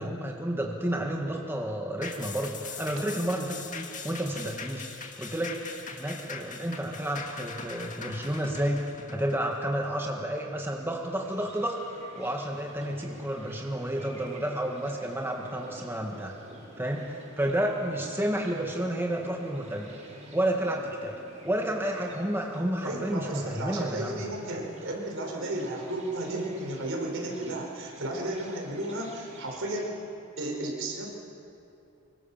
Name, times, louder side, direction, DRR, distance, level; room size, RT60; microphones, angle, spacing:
voice 1, 0.0-4.9 5.2-5.6 6.0-8.8 9.1-11.8 12.2-16.3 16.8-19.9 20.3-21.2 21.4-24.2, right 1 dB, 10° right, 0 dB, 1.8 m, -31 dB
sound 1, 2.0-10.7 11.1-11.2, left 5 dB, 35° left, 2.1 m, -41 dB
sound 2, 10.9-29.9, right 1 dB, 35° right, 6.3 m, -50 dB
voice 2, 22.8-30.1 30.4-31.1, right 1 dB, 65° right, 0 dB, 5.1 m, -33 dB
25.5 x 23.5 x 7.4 m, 2.7 s
head